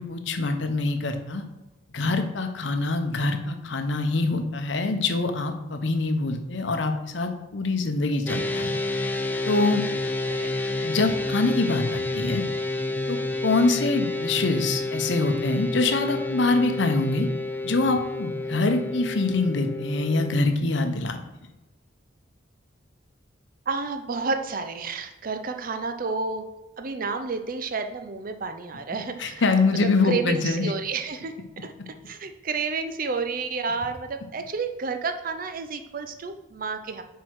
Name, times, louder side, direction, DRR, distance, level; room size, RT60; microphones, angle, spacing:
voice 1, 0.0-1.4 1.9-8.7 9.4-9.8 10.8-12.4 13.1-17.3 17.6-21.2 29.2-30.7, left 3 dB, 65° left, 6 dB, 0.8 m, -24 dB
sound 1, 8.3-20.4, left 2 dB, 10° left, 0.4 m, -29 dB
voice 2, 23.7-26.4 26.8-29.5 29.8-31.3 31.6-37.0, right 4 dB, 45° right, 8 dB, 0.5 m, -30 dB
6.2 x 4.6 x 4.7 m, 1.1 s
head